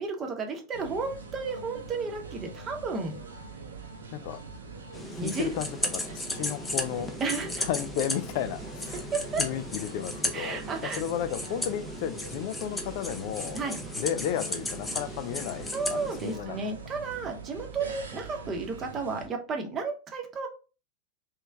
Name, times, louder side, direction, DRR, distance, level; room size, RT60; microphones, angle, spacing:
voice 1, 0.0-3.2 5.2-5.5 7.2-7.7 9.1-9.4 10.3-11.0 13.5-13.8 15.7-20.5, right 4 dB, 25° right, 0.9 m, -33 dB
sound 1, 0.7-19.3, right 4 dB, 70° right, 0.7 m, -43 dB
sound 2, 4.9-16.4, left 2 dB, 10° left, 0.6 m, -35 dB
voice 2, 5.1-6.0 6.3-7.1 7.6-9.1 9.4-10.6 11.0-13.6 14.0-16.7, left 10 dB, 50° left, 0.3 m, -33 dB
3.3 x 3.1 x 3.3 m
figure-of-eight pair, 90°, 0 cm